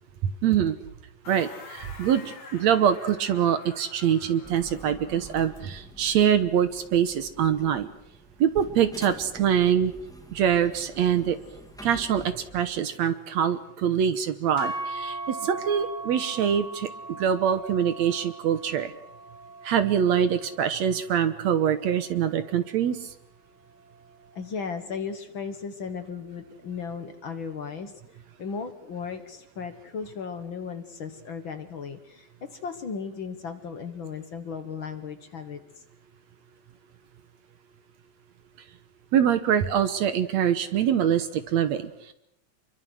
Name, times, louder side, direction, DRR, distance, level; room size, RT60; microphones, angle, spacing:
voice 1, 0.2-0.8 1.3-7.9 8.4-9.9 10.3-11.4 11.8-16.9 17.2-18.9 19.6-23.0 39.1-42.1, right 9 dB, 65° right, 11 dB, 1.9 m, -24 dB
sound 1, 1.2-5.6, left 3 dB, 80° left, 6.1 m, -47 dB
sound 2, 4.4-12.8, right 1 dB, ahead, 1.8 m, -47 dB
sound 3, 14.6-22.8, right 2 dB, 30° left, 2.9 m, -39 dB
voice 2, 24.3-28.0 28.4-35.6, left 5 dB, 55° left, 8 dB, 1.4 m, -36 dB
26.5 x 23.5 x 6.4 m, 0.77 s
omnidirectional pair, 4.1 m